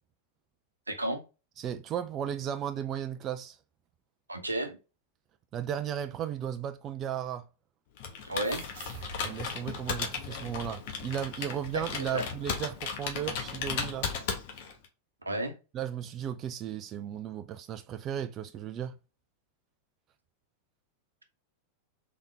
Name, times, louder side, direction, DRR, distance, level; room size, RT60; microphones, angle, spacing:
voice 1, 0.9-1.2 4.3-4.8 8.2-8.7 12.0-12.2 15.2-15.5, right 1 dB, 80° right, 0.8 m, -32 dB
voice 2, 1.6-3.6 5.5-7.4 9.2-14.1 15.7-18.9, right 9 dB, 30° right, 0.4 m, -35 dB
Computer keyboard, 8.0-14.8, left 6 dB, 50° left, 1.0 m, -36 dB
sound 1, 8.4-11.6, right 4 dB, 55° right, 1.0 m, -49 dB
4.0 x 3.6 x 3.3 m
figure-of-eight pair, 90°, 0 cm